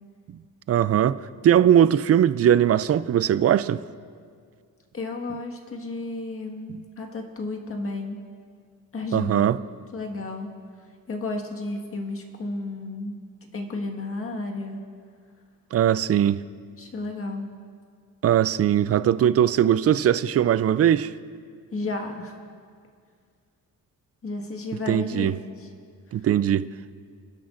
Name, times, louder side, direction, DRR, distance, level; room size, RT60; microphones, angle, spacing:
voice 1, 0.7-1.2 1.4-3.8 9.1-9.6 15.7-16.4 18.2-21.1 24.9-25.3 26.1-26.7, right 10 dB, 45° right, 0.4 m, -20 dB
voice 2, 4.9-8.2 8.9-9.5 9.9-10.5 11.1-13.2 13.5-14.8 16.8-17.5 21.7-22.3 24.2-25.7, left 2 dB, 40° left, 1.6 m, -32 dB
30.0 x 11.5 x 2.5 m
cardioid pair, 120°, 36 cm